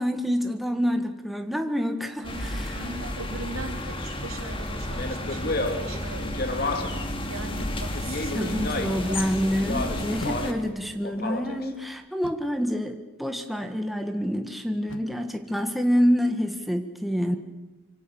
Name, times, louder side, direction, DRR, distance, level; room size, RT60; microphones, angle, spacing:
voice 1, 0.0-2.8 8.3-17.4, equal, ahead, 4 dB, 1.5 m, -27 dB
voice 2, 2.1-9.7, right 2 dB, 80° right, 3 dB, 3.7 m, -40 dB
sound 1, 2.2-10.5, left 1 dB, 25° left, 2.2 m, -32 dB
Speech, 4.9-7.1 7.9-9.1 9.5-10.7 11.0-11.7, left 2 dB, 45° left, 2.5 m, -31 dB
sound 2, 7.6-8.1 10.2-10.9 12.2-12.7 14.9-15.3, left 2 dB, 65° left, 1.6 m, -43 dB
26.0 x 25.0 x 7.1 m, 1.1 s
head